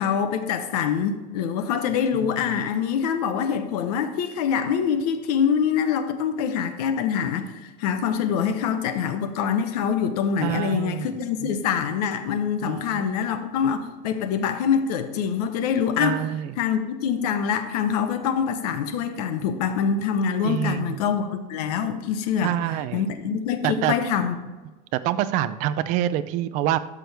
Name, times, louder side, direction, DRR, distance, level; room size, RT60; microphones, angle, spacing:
voice 1, 0.0-16.2 16.6-24.3, left 7 dB, 70° left, 9 dB, 1.0 m, -25 dB
voice 2, 10.4-11.1 12.6-13.1 16.0-16.5 20.4-21.0 22.4-23.1 23.6-23.9 24.9-26.8, right 12 dB, 40° right, 13 dB, 0.4 m, -26 dB
12.5 x 6.1 x 3.4 m, 1.2 s
supercardioid pair, 165°, 21 cm